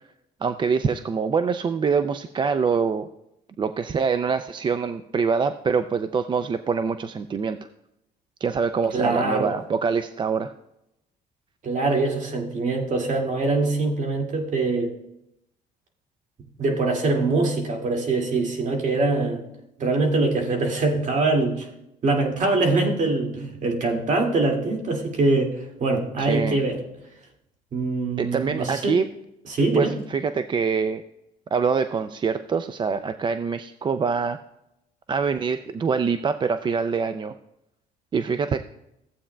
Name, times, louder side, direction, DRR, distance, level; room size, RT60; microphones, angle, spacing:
voice 1, 0.4-3.1 3.6-7.6 8.4-10.5 26.2-26.6 28.2-29.1 29.7-31.0 31.5-34.4 35.1-37.3 38.1-38.6, right 5 dB, 30° right, 10 dB, 0.4 m, -24 dB
voice 2, 8.9-9.5 11.6-14.9 16.6-19.4 19.8-21.7 22.0-25.5 25.8-26.8 27.7-28.9 29.5-29.9, right 3 dB, 45° right, 1 dB, 2.2 m, -23 dB
15.0 x 8.4 x 2.2 m, 0.85 s
cardioid pair, 110°, 17 cm